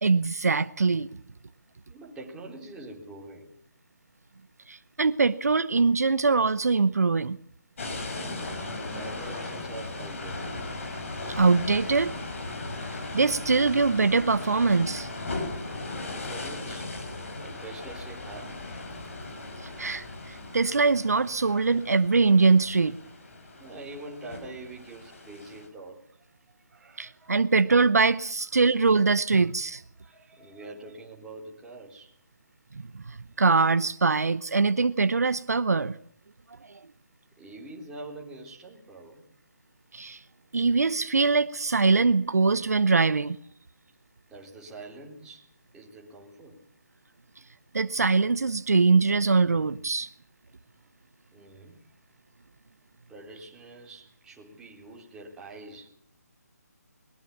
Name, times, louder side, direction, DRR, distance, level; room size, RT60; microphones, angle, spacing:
voice 1, 0.0-1.1 4.7-7.4 11.4-12.1 13.1-15.1 19.8-23.0 27.0-29.8 33.4-35.9 39.9-40.2 40.5-43.4 47.7-50.1, right 4 dB, 65° right, 14 dB, 0.9 m, -23 dB
voice 2, 1.9-3.7 8.1-10.5 16.1-16.9 17.4-18.7 23.6-26.2 26.7-27.6 28.5-28.7 29.4-32.2 37.4-39.2 44.3-45.5 45.7-46.6 50.7-50.8 51.3-51.8 53.1-55.9, right 2 dB, 5° right, -2 dB, 3.9 m, -45 dB
sound 1, 7.8-25.7, left 2 dB, 50° left, 6.3 m, -37 dB
21.5 x 20.0 x 7.1 m, 0.62 s
figure-of-eight pair, 150°, 9 cm